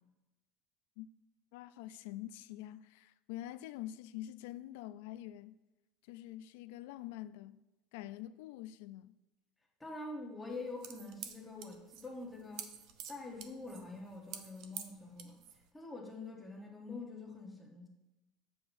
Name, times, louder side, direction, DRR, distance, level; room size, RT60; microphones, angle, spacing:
voice 1, 1.5-5.6 6.0-7.6 7.9-9.2, left 14 dB, 80° left, 0.3 m, -46 dB
voice 2, 9.8-12.7 13.1-15.4 15.7-17.9, left 3 dB, 10° left, 1.0 m, -45 dB
sound 1, 10.5-15.7, right 9 dB, 55° right, 0.6 m, -48 dB
8.3 x 6.9 x 2.6 m
cardioid pair, 155°, 0 cm